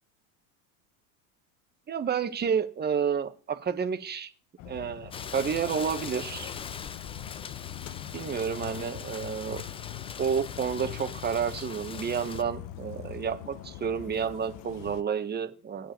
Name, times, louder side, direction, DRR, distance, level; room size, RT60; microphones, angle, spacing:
voice 1, 1.9-4.3 4.6-6.5 8.1-9.6 10.2-15.9, right 7 dB, 25° right, 8 dB, 1.4 m, -30 dB
sound 1, 4.6-15.0, left 13 dB, 50° left, 1.1 m, -42 dB
Rain, 5.1-12.4, left 6 dB, 15° left, 0.4 m, -41 dB
8.8 x 5.3 x 7.7 m, 0.39 s
supercardioid pair, 115°, 43 cm